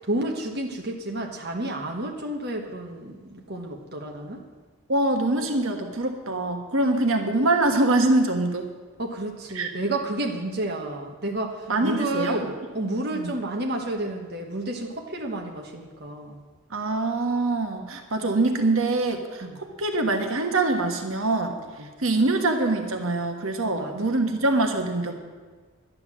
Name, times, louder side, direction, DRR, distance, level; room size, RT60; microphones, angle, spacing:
voice 1, 0.0-4.4 9.0-16.4 19.4-19.6 21.8-21.9 23.6-23.9, right 1 dB, 45° right, 1 dB, 1.3 m, -31 dB
voice 2, 4.9-8.7 9.5-9.7 11.7-12.5 13.1-13.3 16.7-25.1, right 2 dB, 70° right, 4 dB, 1.3 m, -24 dB
11.5 x 10.5 x 7.4 m, 1.5 s
head